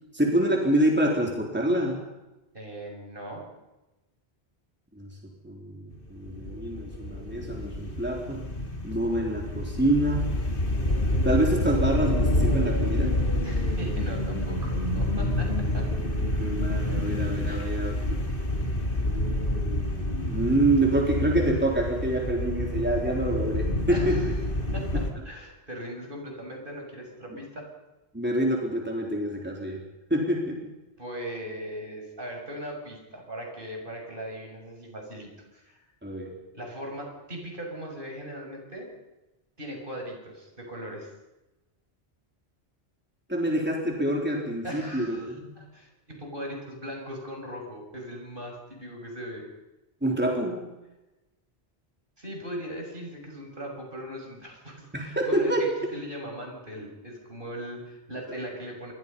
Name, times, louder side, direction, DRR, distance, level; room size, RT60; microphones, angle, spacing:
voice 1, 0.1-2.0 5.0-5.1 5.4-8.5 8.8-10.3 11.2-13.2 16.4-18.2 20.2-24.3 24.9-25.0 28.1-29.8 30.1-30.7 36.0-36.3 43.3-45.6 50.0-50.7 54.9-55.7, right 1 dB, 10° right, -1 dB, 4.0 m, -26 dB
voice 2, 2.5-3.4 13.4-15.9 17.5-17.7 23.9-24.3 24.7-27.7 31.0-35.8 36.5-38.9 39.6-41.1 44.6-49.5 52.2-58.9, equal, 55° right, 1 dB, 7.0 m, -39 dB
sound 1, 6.0-25.1, left 1 dB, 55° left, 3.0 m, -28 dB
28.0 x 23.5 x 5.5 m, 1.0 s
omnidirectional pair, 1.1 m